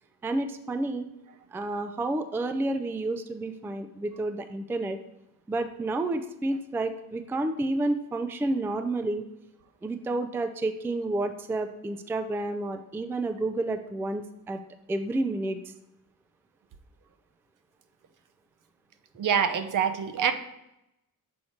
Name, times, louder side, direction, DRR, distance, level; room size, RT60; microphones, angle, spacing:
voice 1, 0.2-1.1 1.5-5.0 5.5-9.2 9.8-14.6 14.9-15.6, right 2 dB, 5° right, 8 dB, 0.3 m, -30 dB
voice 2, 19.2-20.3, right 8 dB, 60° right, 10 dB, 0.7 m, -25 dB
6.4 x 4.2 x 4.3 m, 0.85 s
cardioid pair, 120°, 35 cm